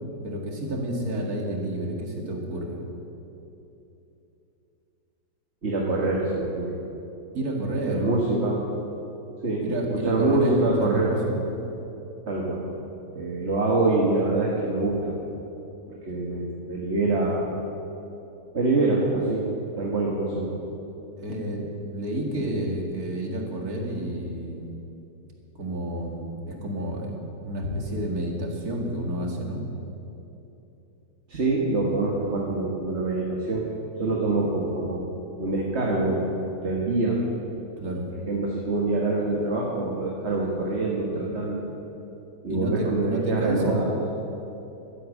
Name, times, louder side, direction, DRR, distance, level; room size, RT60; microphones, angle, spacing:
voice 1, 0.2-2.8 7.3-8.1 9.6-11.4 21.2-24.7 25.6-27.2 27.4-29.6 37.8-38.1 42.5-43.8, right 1 dB, 55° right, 0 dB, 2.5 m, -30 dB
voice 2, 5.6-6.8 7.9-8.6 9.4-9.6 10.1-11.1 12.3-12.6 13.1-15.1 16.1-17.5 18.5-19.5 19.8-20.5 31.3-33.7 34.0-35.0 35.4-36.4 36.6-37.2 38.3-41.6 42.4-43.9, right 2 dB, 40° right, -3 dB, 1.8 m, -25 dB
12.5 x 10.5 x 8.5 m, 2.9 s
omnidirectional pair, 1.9 m